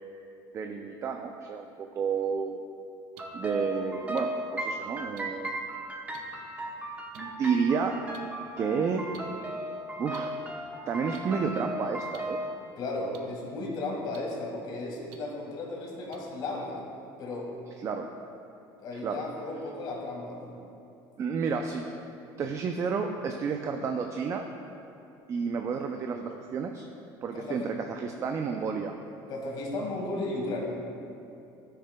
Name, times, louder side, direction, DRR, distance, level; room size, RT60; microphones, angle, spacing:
voice 1, 0.5-2.6 3.3-5.6 7.1-8.0 8.6-9.1 9.4-9.7 10.0-10.4 10.9-12.4 17.8-18.1 19.0-19.2 21.2-21.8 22.4-24.5 25.3-26.8 27.2-29.0, right 5 dB, 30° right, 4 dB, 0.4 m, -31 dB
sound 1, 3.1-3.2 4.2-4.3 5.2-5.3 6.1-6.2 7.1-7.2 8.1-8.2 9.1-9.2 10.1-10.2 11.1-11.2 12.1-12.2 13.1-13.2 14.1-14.2 15.1-15.2 16.1-16.2, right 10 dB, 75° right, 0.6 m, -49 dB
sound 2, 3.2-12.5, right 1 dB, 15° right, 0.8 m, -36 dB
voice 2, 12.8-16.9 17.2-17.5 18.8-20.5 27.3-27.7 29.3-30.8, left 2 dB, 50° left, -1 dB, 1.8 m, -35 dB
13.0 x 6.7 x 2.2 m, 2.7 s
cardioid pair, 140°, 10 cm